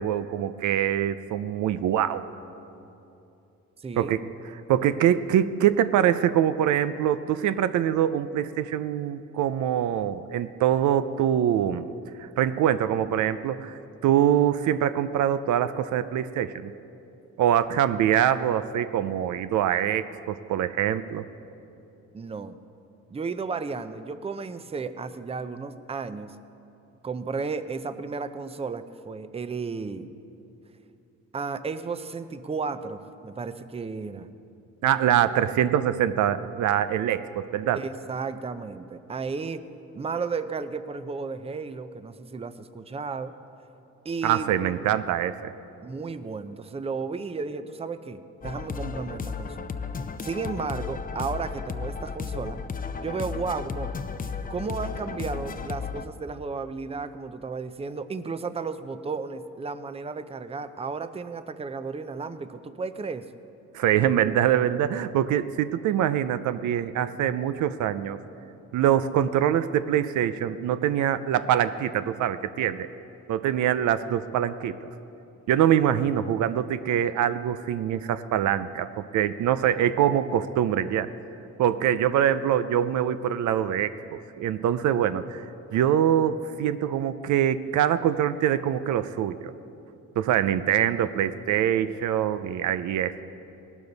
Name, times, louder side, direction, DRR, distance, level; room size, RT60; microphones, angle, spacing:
voice 1, 0.0-2.2 4.0-4.3 4.7-11.9 12.2-16.7 17.4-21.3 34.8-37.8 44.2-45.5 63.7-68.2 68.7-72.9 73.3-74.8 75.5-81.1 81.6-85.5 85.7-89.5 90.2-93.2, right 10 dB, 75° right, 12 dB, 0.6 m, -24 dB
voice 2, 3.8-4.3 22.1-22.6 23.1-26.4 27.0-30.1 31.3-34.3 37.7-39.6 39.9-43.3 44.0-44.9 45.8-49.8 50.2-52.6 53.0-53.9 54.5-63.3, right 4 dB, 20° right, 11 dB, 0.6 m, -33 dB
sound 1, 48.4-56.1, left 5 dB, 30° left, 0.6 m, -34 dB
18.5 x 12.0 x 4.0 m, 2.8 s
cardioid pair, 90°, 30 cm